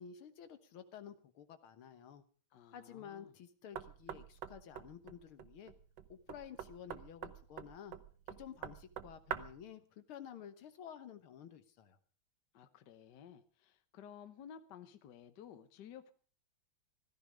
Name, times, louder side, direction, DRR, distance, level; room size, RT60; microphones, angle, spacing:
voice 1, 0.0-2.2 2.7-5.7 6.1-8.0 8.3-12.0, left 8 dB, 80° left, 2.0 m, -52 dB
voice 2, 2.5-3.3 12.5-16.1, left 8 dB, 60° left, 1.5 m, -54 dB
Knock, 3.8-9.7, right 9 dB, 65° right, 1.4 m, -46 dB
15.5 x 14.0 x 5.1 m
omnidirectional pair, 2.4 m